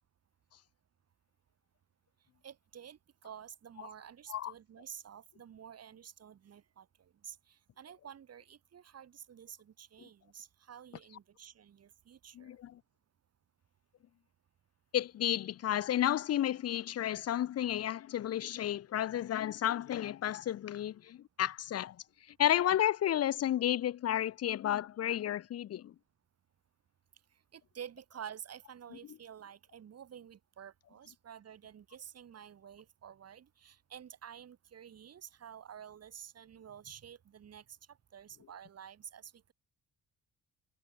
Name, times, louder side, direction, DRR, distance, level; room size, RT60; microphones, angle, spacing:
voice 1, 2.4-12.6 27.5-39.5, right 8 dB, 55° right, 3.5 m, -50 dB
voice 2, 12.3-12.8 14.9-22.0 22.4-25.9, left 11 dB, 55° left, 0.7 m, -32 dB
cardioid pair, 90°, 30 cm